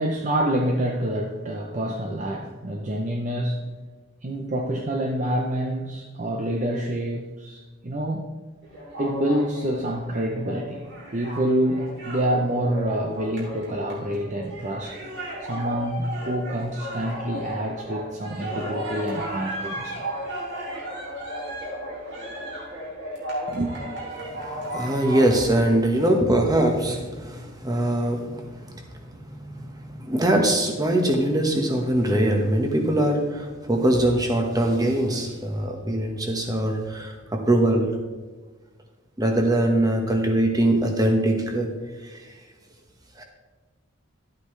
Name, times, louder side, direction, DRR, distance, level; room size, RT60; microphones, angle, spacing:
voice 1, 0.0-3.7 4.2-8.2 9.0-10.8 11.1-15.0 15.4-20.1 23.5-23.8, right 1 dB, 35° right, 2 dB, 0.7 m, -27 dB
sound 1, 8.6-25.4, right 1 dB, 60° right, 3.1 m, -34 dB
voice 2, 24.2-28.8 29.1-37.9 39.2-41.7 42.0-42.2 43.2-43.3, right 1 dB, 20° right, 2 dB, 1.3 m, -22 dB
12.0 x 8.4 x 3.3 m, 1.3 s
head